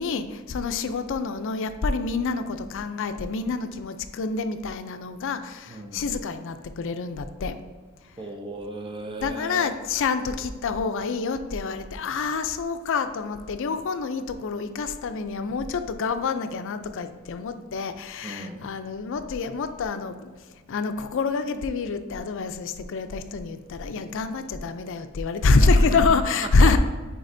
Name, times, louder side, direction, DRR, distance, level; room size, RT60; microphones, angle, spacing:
voice 1, 0.0-7.6 9.2-20.3 20.7-26.8, left 4 dB, 60° left, 9 dB, 0.4 m, -26 dB
voice 2, 5.7-6.0 8.2-9.7 18.2-18.7 25.9-26.2 26.6-26.7, right 2 dB, 25° right, 3 dB, 0.6 m, -36 dB
9.3 x 4.0 x 2.6 m, 1.4 s
head